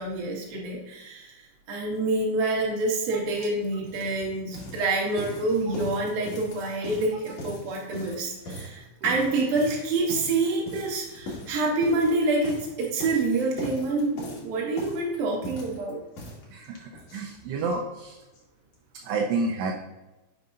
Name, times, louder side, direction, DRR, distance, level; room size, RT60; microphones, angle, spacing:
voice 1, 0.0-16.0, right 2 dB, 60° right, -3 dB, 2.8 m, -27 dB
sound 1, 3.0-3.1 3.4-17.8 18.0-18.1 18.3-18.4 18.7-18.8, equal, 75° left, 1.5 m, -40 dB
voice 2, 16.5-18.2 19.0-19.7, right 3 dB, 80° right, -1 dB, 2.7 m, -30 dB
7.9 x 5.3 x 2.5 m, 1.1 s
omnidirectional pair, 5.4 m